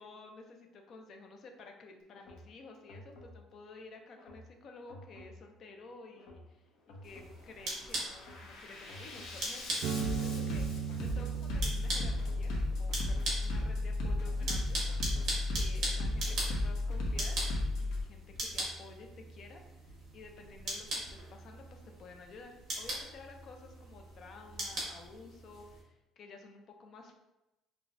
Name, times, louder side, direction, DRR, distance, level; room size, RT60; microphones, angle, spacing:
voice 1, 0.0-14.8 15.5-17.4 17.8-27.1, left 3 dB, 40° left, 3 dB, 0.5 m, -52 dB
Bass drum, 2.2-2.4 2.9-3.4 4.2-4.4 4.9-5.4 6.2-6.4 6.9-7.4 7.8-18.0, left 1 dB, 65° left, 0.9 m, -35 dB
sound 1, 7.0-25.8, right 1 dB, 45° right, 1.5 m, -41 dB
sound 2, 9.8-17.4, right 7 dB, 70° right, 0.3 m, -41 dB
5.8 x 2.3 x 2.6 m, 0.98 s
cardioid pair, 165°, 0 cm